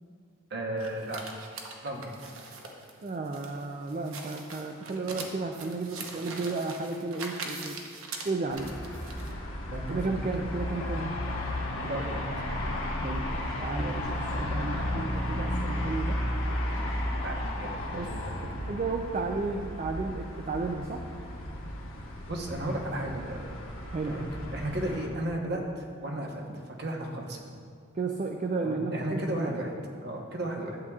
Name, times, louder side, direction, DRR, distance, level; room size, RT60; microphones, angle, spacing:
voice 1, 0.5-1.2 1.8-2.1 9.6-10.0 11.8-12.3 17.2-18.5 22.3-23.4 24.0-27.4 28.6-29.7 30.0-30.8, right 1 dB, 50° right, 1 dB, 1.0 m, -34 dB
sound 1, 0.8-9.3, right 4 dB, 80° right, 0.9 m, -42 dB
voice 2, 3.0-7.8 8.2-8.7 9.9-11.2 13.0-16.2 17.9-18.1 18.7-21.0 23.9-24.2 27.9-29.6, right 3 dB, 35° right, 3 dB, 0.3 m, -33 dB
sound 2, 8.5-25.1, left 1 dB, 75° left, 1.2 m, -34 dB
11.5 x 8.3 x 2.4 m, 2.2 s
head